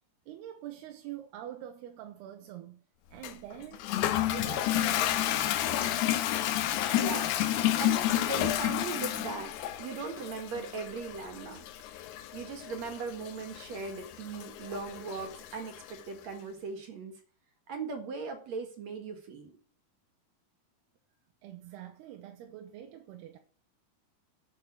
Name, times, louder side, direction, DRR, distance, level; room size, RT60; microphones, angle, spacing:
voice 1, 0.3-2.8 3.1-3.9 4.3-6.0 21.4-23.4, right 11 dB, 80° right, 3.0 m, -45 dB
Toilet flush, 3.2-16.0, left 12 dB, 80° left, 3.0 m, -31 dB
voice 2, 6.9-9.5 9.8-11.7 12.3-17.1 17.7-19.5, right 4 dB, 50° right, 2.5 m, -39 dB
11.0 x 6.7 x 8.4 m
omnidirectional pair, 4.6 m